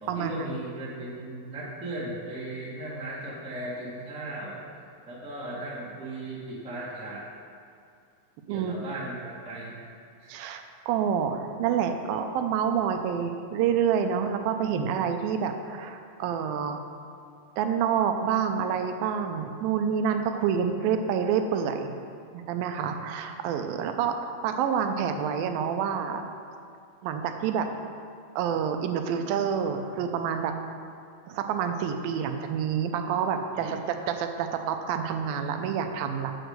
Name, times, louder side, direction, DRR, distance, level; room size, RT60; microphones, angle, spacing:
voice 1, 0.0-4.6 5.1-7.2 8.5-9.7 10.2-10.4 33.5-33.8, right 1 dB, 5° right, -7 dB, 0.7 m, -37 dB
voice 2, 10.3-16.8 17.6-21.9 22.3-24.1 24.4-26.2 27.0-27.7 28.4-30.5 31.3-36.3, right 7 dB, 85° right, 6 dB, 2.4 m, -28 dB
7.6 x 6.3 x 6.6 m, 2.4 s
omnidirectional pair, 4.2 m